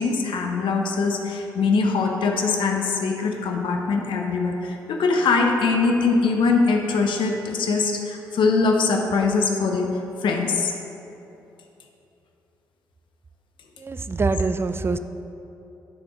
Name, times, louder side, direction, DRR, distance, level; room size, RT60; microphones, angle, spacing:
voice 1, 0.0-10.7, left 4 dB, 60° left, 2 dB, 0.7 m, -22 dB
voice 2, 13.8-15.0, right 3 dB, 25° right, 11 dB, 0.4 m, -24 dB
9.5 x 3.5 x 4.7 m, 2.9 s
hypercardioid pair, 45°, 9 cm